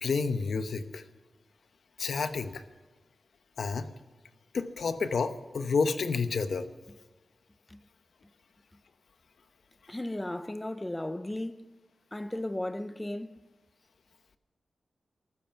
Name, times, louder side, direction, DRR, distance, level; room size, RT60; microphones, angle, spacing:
voice 1, 0.0-1.0 2.0-2.6 3.6-3.9 4.5-6.7, left 4 dB, 70° left, 1.0 m, -30 dB
voice 2, 9.9-11.7 12.1-13.4, left 1 dB, 10° left, 0.6 m, -35 dB
14.0 x 13.0 x 5.9 m
wide cardioid pair, 145°, 0 cm